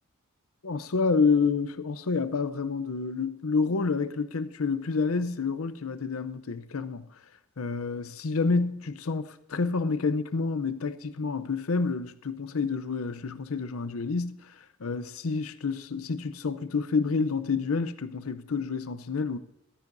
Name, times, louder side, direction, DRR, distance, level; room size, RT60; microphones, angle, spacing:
voice 1, 0.6-7.1 7.6-19.4, left 4 dB, 85° left, 0.7 m, -28 dB
15.0 x 12.5 x 2.6 m
head